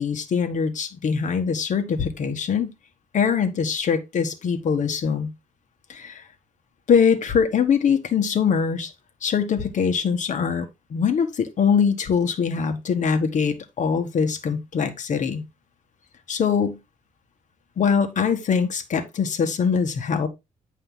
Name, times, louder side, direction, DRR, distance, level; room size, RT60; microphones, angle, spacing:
voice 1, 0.0-2.7 3.1-5.3 5.9-6.2 6.9-8.9 9.2-15.4 16.3-16.8 17.8-20.3, left 6 dB, 65° left, 1.6 m, -23 dB
9.4 x 5.4 x 3.9 m
wide cardioid pair, 120°, 14 cm